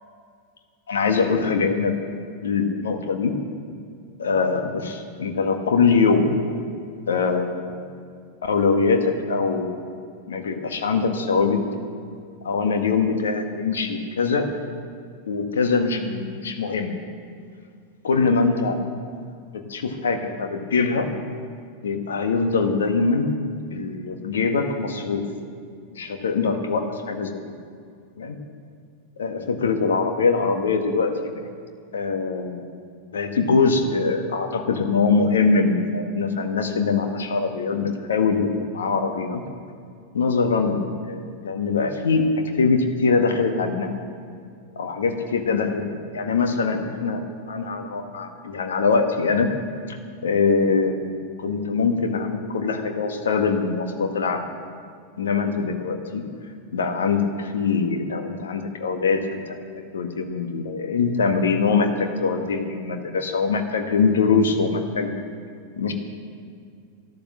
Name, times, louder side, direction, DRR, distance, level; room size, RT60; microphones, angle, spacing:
voice 1, 0.9-1.9 2.4-3.3 4.2-6.3 7.1-7.9 8.4-9.7 10.3-11.6 12.4-14.5 15.3-16.9 18.0-18.8 19.5-21.1 21.8-23.4 23.7-25.2 25.9-27.5 28.2-28.4 29.2-31.3 31.9-32.7 33.1-38.5 38.7-39.4 40.1-40.8 41.1-42.2 42.6-43.9 44.7-45.8 46.1-47.2 47.5-49.5 49.9-50.0 50.2-54.4 55.2-56.2 56.7-59.5 59.9-65.1 65.8-65.9, left 4 dB, 65° left, 5 dB, 1.6 m, -23 dB
12.5 x 12.0 x 7.4 m, 2.3 s
figure-of-eight pair, 90°, 0 cm